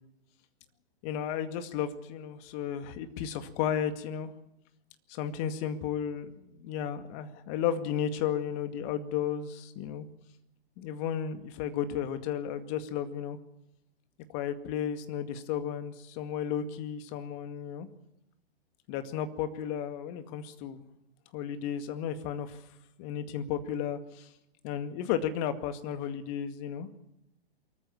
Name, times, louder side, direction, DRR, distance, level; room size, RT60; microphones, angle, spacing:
voice 1, 1.0-4.3 5.1-10.1 10.8-13.4 14.3-17.9 18.9-20.8 21.3-22.6 23.0-24.3 24.6-26.9, left 9 dB, 40° left, 9 dB, 2.1 m, -33 dB
24.0 x 14.5 x 8.8 m, 0.89 s
figure-of-eight pair, 115°, 31 cm